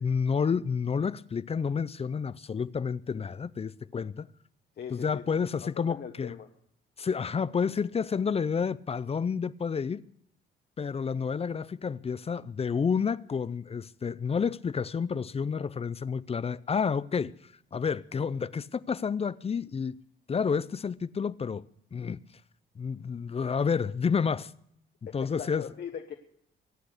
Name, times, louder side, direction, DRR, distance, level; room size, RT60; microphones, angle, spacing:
voice 1, 0.0-4.3 4.9-6.4 7.0-10.0 10.8-20.0 20.3-22.2 22.8-24.5 25.1-25.6, left 6 dB, 30° left, 0.5 m, -30 dB
voice 2, 4.8-6.5 25.1-26.1, left 8 dB, 55° left, 1.2 m, -41 dB
23.5 x 8.6 x 6.7 m
cardioid pair, 90°, 20 cm